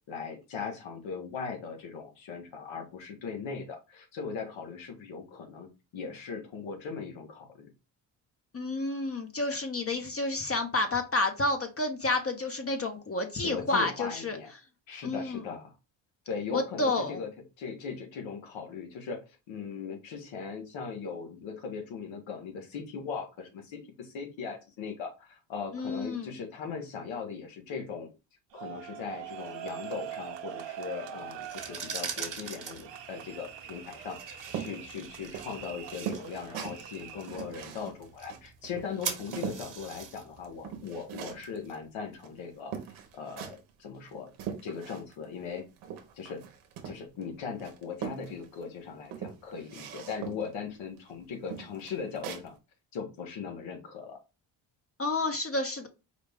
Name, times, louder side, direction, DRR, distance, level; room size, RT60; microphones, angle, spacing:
voice 1, 0.1-7.7 13.4-14.5 14.9-15.7 16.3-17.3 17.6-28.1 28.5-42.7 43.1-44.3 44.6-45.7 46.1-46.5 46.8-52.5 52.9-54.2, left 5 dB, 75° left, 1.2 m, -39 dB
voice 2, 8.5-14.4 15.0-15.4 16.5-17.2 25.7-26.3 55.0-55.9, left 2 dB, 30° left, 0.8 m, -30 dB
sound 1, 28.5-37.5, right 11 dB, 65° right, 0.8 m, -43 dB
sound 2, 31.3-42.2, right 6 dB, 40° right, 1.1 m, -43 dB
sound 3, 34.5-39.7 40.1-41.6 42.2-42.3 42.7-43.7 44.1-45.2 45.5-47.2 47.6-48.6 49.0-50.5 51.0-51.1 51.5-52.5, right 8 dB, 90° right, 0.9 m, -41 dB
4.8 x 2.3 x 3.4 m
cardioid pair, 75°, 47 cm